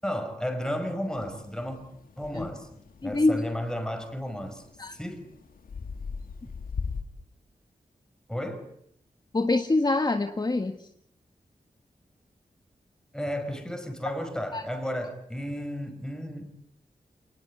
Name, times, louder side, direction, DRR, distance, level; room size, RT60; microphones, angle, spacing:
voice 1, 0.0-1.8 2.2-4.6 4.9-5.2 8.3-8.6 13.1-16.5, equal, 5° left, 5.5 m, -33 dB
sound 1, 1.1-7.0, left 5 dB, 85° left, 2.3 m, -40 dB
voice 2, 3.0-3.4 4.8-4.9 9.3-10.7 14.5-14.6, left 2 dB, 30° left, 1.8 m, -25 dB
29.0 x 20.0 x 9.7 m
wide cardioid pair, 130°, 14 cm